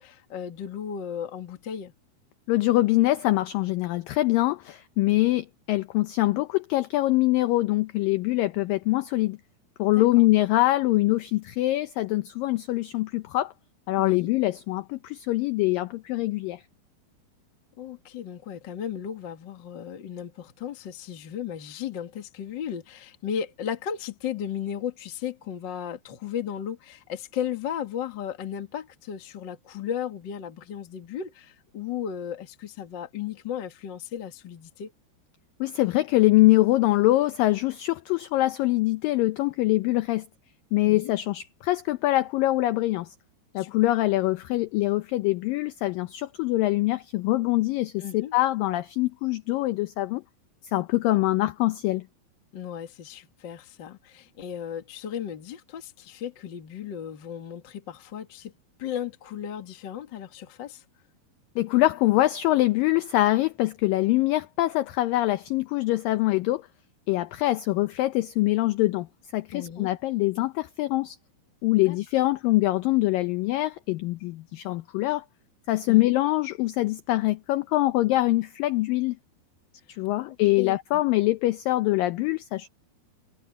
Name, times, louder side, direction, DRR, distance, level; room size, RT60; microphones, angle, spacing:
voice 1, 0.0-1.9 10.0-10.3 14.0-14.3 17.8-34.9 40.8-41.1 43.5-43.7 48.0-48.3 52.5-58.5 58.8-60.8 69.5-69.9 71.9-72.0 75.9-76.2 80.2-81.0, left 9 dB, 45° left, 1.5 m, -35 dB
voice 2, 2.5-9.4 9.8-13.5 13.9-16.6 35.6-40.3 40.7-43.1 43.5-50.2 50.7-52.1 61.6-66.7 67.1-69.1 69.3-71.2 71.6-75.3 75.7-79.2 80.0-82.7, left 17 dB, 80° left, 2.0 m, -24 dB
omnidirectional pair, 4.8 m